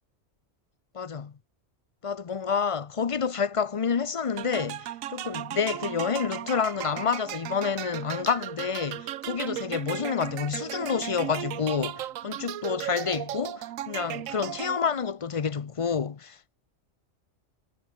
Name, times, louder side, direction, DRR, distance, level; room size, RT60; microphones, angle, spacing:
voice 1, 0.9-1.3 2.0-16.4, left 6 dB, 40° left, 0.5 m, -29 dB
sound 1, 4.4-15.0, right 13 dB, 85° right, 1.1 m, -36 dB
omnidirectional pair, 1.4 m